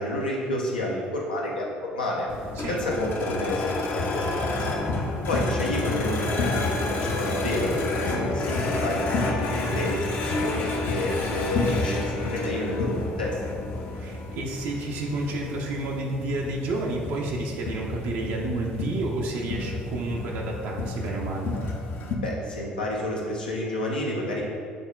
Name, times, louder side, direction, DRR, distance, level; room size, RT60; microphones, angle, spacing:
voice 1, 0.0-1.7 1.9-2.3 2.7-4.8 5.3-13.4 22.2-24.4, left 1 dB, 85° left, -3 dB, 0.6 m, -30 dB
sound 1, 2.3-22.1, left 2 dB, 45° left, 0.6 m, -30 dB
voice 2, 8.2-8.6 13.9-21.5, right 2 dB, 60° right, -2 dB, 0.6 m, -30 dB
6.4 x 3.5 x 2.3 m, 2.4 s
figure-of-eight pair, 55°, 5 cm